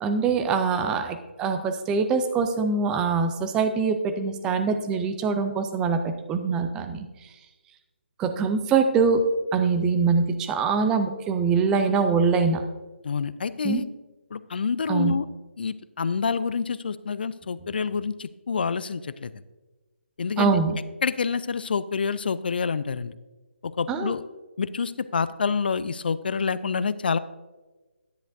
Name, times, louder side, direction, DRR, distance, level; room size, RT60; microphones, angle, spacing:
voice 1, 0.0-7.1 8.2-9.2 9.5-12.6 13.6-13.8 14.9-15.2 20.4-20.8 23.9-24.1, right 5 dB, 10° right, 8 dB, 0.4 m, -23 dB
voice 2, 13.0-13.9 14.3-15.3 15.6-19.3 20.2-20.6 21.0-23.1 23.6-24.2 24.6-27.2, left 5 dB, 50° left, 16 dB, 0.4 m, -27 dB
10.0 x 9.1 x 2.6 m, 1.2 s
figure-of-eight pair, 150°, 7 cm